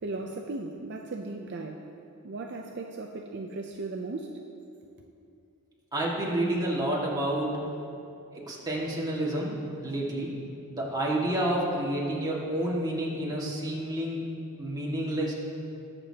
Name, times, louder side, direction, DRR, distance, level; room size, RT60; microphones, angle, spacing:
voice 1, 0.0-1.9 2.2-4.4, right 3 dB, 55° right, 2 dB, 0.5 m, -37 dB
voice 2, 5.9-7.5 8.3-9.5 9.8-10.3 10.7-14.2 14.6-15.3, right 1 dB, 20° right, -5 dB, 1.9 m, -29 dB
20.5 x 6.8 x 2.9 m, 2.7 s
head